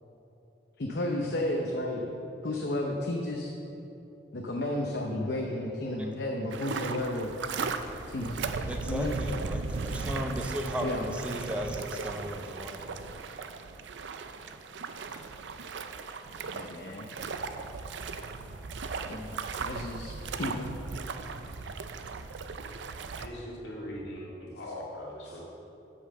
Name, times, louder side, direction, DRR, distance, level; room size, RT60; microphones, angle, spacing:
voice 1, 0.8-2.0 2.4-3.5 4.3-7.3 8.1-9.2 10.8-11.1 15.1-15.2 16.5-17.1 19.0-19.4 19.6-20.7 25.3-25.4, left 1 dB, 65° left, 0 dB, 0.7 m, -33 dB
sound 1, 6.5-23.3, right 4 dB, 85° right, 0.5 m, -37 dB
voice 2, 8.7-12.8, equal, 5° right, 2 dB, 0.5 m, -35 dB
voice 3, 23.2-25.4, left 1 dB, 85° left, -3 dB, 2.1 m, -40 dB
8.3 x 5.6 x 6.6 m, 2.9 s
head